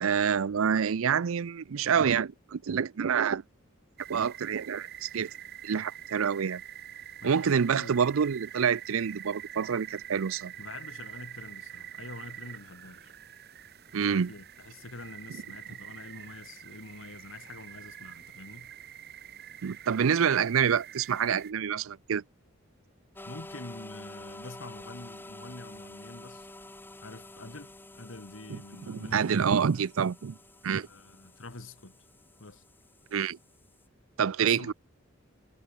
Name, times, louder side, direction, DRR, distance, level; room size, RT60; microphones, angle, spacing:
voice 1, 0.0-3.4 4.1-5.3 5.6-6.6 7.2-10.5 13.9-14.3 19.6-22.2 28.5-28.6 28.9-30.4 30.6-30.9 33.1-33.4 34.2-34.7, right 7 dB, 75° right, 0.5 m, -27 dB
sound 1, 4.0-21.5, right 10 dB, 50° right, 1.6 m, -46 dB
voice 2, 7.2-8.1 10.6-13.1 14.1-18.7 23.3-26.5 27.0-29.6 30.6-32.0 32.4-32.6 34.4-34.7, left 2 dB, 70° left, 1.8 m, -46 dB
sound 2, 23.2-33.9, left 1 dB, 10° left, 1.1 m, -49 dB
head